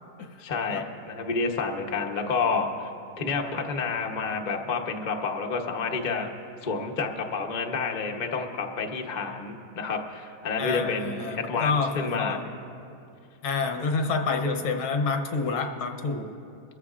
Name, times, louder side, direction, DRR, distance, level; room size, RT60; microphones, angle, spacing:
voice 1, 0.4-2.9 3.2-6.3 6.6-12.4, left 4 dB, 55° left, 2 dB, 0.4 m, -29 dB
voice 2, 10.6-12.5 13.4-16.3, left 4 dB, 80° left, 5 dB, 1.8 m, -28 dB
23.0 x 14.5 x 2.4 m, 2.7 s
omnidirectional pair, 2.3 m